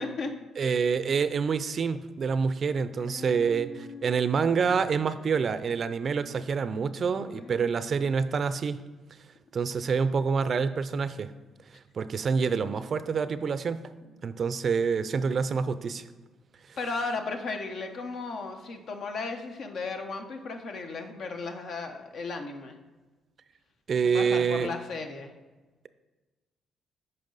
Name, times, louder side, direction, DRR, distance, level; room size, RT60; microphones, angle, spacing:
voice 1, 0.0-0.4 3.0-4.2 7.2-7.8 14.2-14.3 16.8-22.8 24.1-25.3, left 3 dB, 65° left, 5 dB, 1.0 m, -36 dB
voice 2, 0.6-8.8 9.5-11.3 11.9-13.9 14.2-16.0 23.9-24.7, right 5 dB, 50° right, 13 dB, 0.5 m, -27 dB
8.9 x 5.4 x 4.0 m, 1.2 s
cardioid pair, 90°, 0 cm